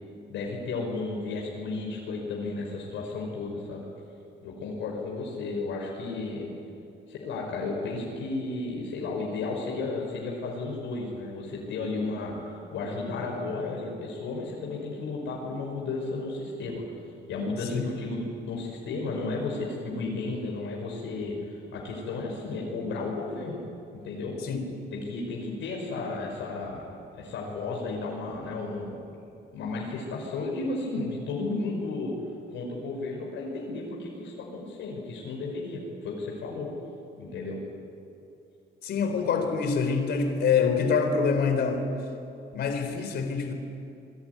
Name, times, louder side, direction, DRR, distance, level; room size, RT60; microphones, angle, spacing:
voice 1, 0.3-3.8 4.4-6.5 7.1-16.8 17.3-23.6 24.0-24.4 24.9-29.0 29.5-32.2 32.5-36.7 37.2-37.6 38.9-39.3, left 3 dB, 80° left, -2 dB, 5.8 m, -33 dB
voice 2, 38.8-41.9 42.5-43.5, left 5 dB, 60° left, 5 dB, 3.9 m, -25 dB
28.0 x 22.0 x 9.7 m, 2.7 s
cardioid pair, 160°, 19 cm